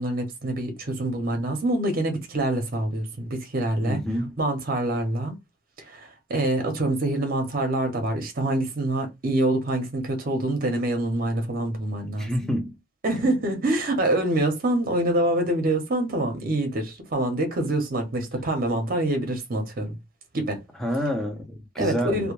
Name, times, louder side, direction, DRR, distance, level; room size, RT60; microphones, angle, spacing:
voice 1, 0.0-4.0 4.4-5.3 5.9-12.3 13.0-20.0 20.3-20.6 21.8-22.3, right 1 dB, 45° right, 0.6 m, -25 dB
voice 2, 3.8-4.4 12.2-12.8 20.8-22.3, equal, ahead, 0.5 m, -28 dB
2.1 x 2.1 x 3.0 m
head